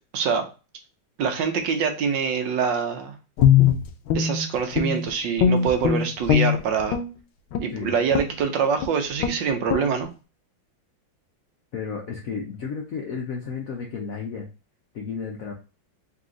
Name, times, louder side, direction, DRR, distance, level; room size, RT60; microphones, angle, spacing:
voice 1, 0.1-0.5 1.2-3.1 4.1-7.0 7.6-10.1, right 6 dB, 70° right, 5 dB, 1.3 m, -25 dB
Guitar, 3.4-5.1 5.4-7.1 7.5-7.7 8.1-8.4 8.8-8.9 9.2-9.4 9.7-9.9, left 8 dB, 85° left, 1.4 m, -21 dB
voice 2, 11.7-14.5 14.9-15.5, left 5 dB, 65° left, 0 dB, 0.8 m, -32 dB
4.1 x 2.8 x 3.7 m, 0.31 s
omnidirectional pair, 2.2 m